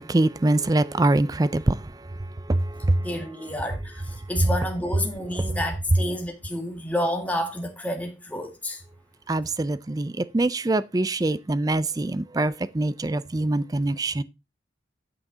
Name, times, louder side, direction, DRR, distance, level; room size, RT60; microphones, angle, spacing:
voice 1, 0.0-1.8 2.5-3.0 9.3-14.2, right 2 dB, 20° right, 0.4 m, -24 dB
voice 2, 3.0-8.8, left 1 dB, 10° left, 1.9 m, -30 dB
8.9 x 7.6 x 3.9 m
head